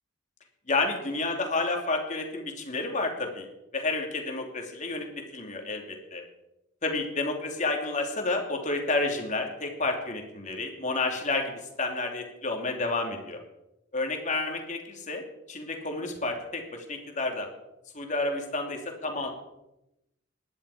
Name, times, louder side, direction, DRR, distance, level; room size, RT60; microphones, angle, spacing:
voice 1, 0.7-3.5 3.7-6.2 6.8-13.4 13.9-15.2 15.5-17.5 17.9-19.3, left 3 dB, 40° left, 2 dB, 2.8 m, -30 dB
19.5 x 11.5 x 5.0 m, 0.90 s
head